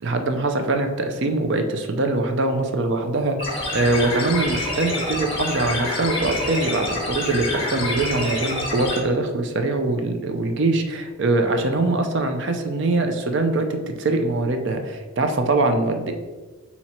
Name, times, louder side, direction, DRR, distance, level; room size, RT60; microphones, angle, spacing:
voice 1, 0.0-16.1, right 2 dB, 55° right, 6 dB, 0.5 m, -23 dB
sound 1, 3.4-9.0, left 1 dB, 25° left, 1.1 m, -27 dB
4.3 x 2.8 x 4.3 m, 1.3 s
head